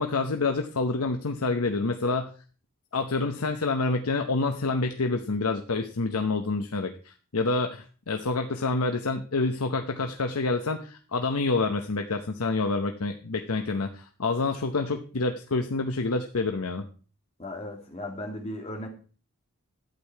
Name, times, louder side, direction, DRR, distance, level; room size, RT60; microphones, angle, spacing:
voice 1, 0.0-2.3 2.9-16.8, left 3 dB, 85° left, 5 dB, 0.9 m, -27 dB
voice 2, 17.4-18.9, left 1 dB, 30° left, 2 dB, 2.1 m, -36 dB
12.0 x 8.4 x 4.6 m, 0.39 s
head